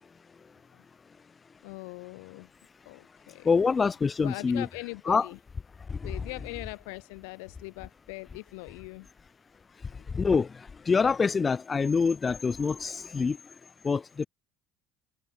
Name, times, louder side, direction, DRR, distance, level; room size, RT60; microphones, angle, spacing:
voice 1, 1.6-2.5 2.8-3.5 4.2-5.4 6.0-9.1 9.9-10.1, left 30 dB, 80° left, 0.8 m, -41 dB
voice 2, 3.4-4.6 5.1-5.3 5.9-6.1 9.9-13.5 13.8-14.3, left 5 dB, 30° left, 1.0 m, -26 dB
supercardioid pair, 85°, 0 cm